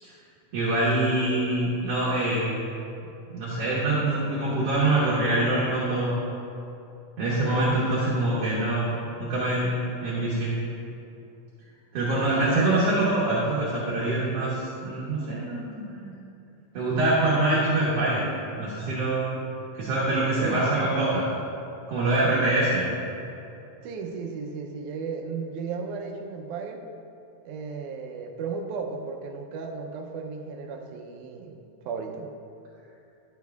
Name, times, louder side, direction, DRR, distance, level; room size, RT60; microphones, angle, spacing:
voice 1, 0.5-2.5 3.3-6.2 7.2-9.7 10.0-10.6 11.9-16.1 16.7-18.2 18.5-19.5 19.7-21.2 21.9-22.9, right 2 dB, 60° right, -7 dB, 2.0 m, -25 dB
voice 2, 20.3-21.2 23.8-26.8 27.5-31.6 31.9-32.3, right 5 dB, 85° right, 3 dB, 2.1 m, -34 dB
12.0 x 6.6 x 2.3 m, 2.7 s
omnidirectional pair, 3.5 m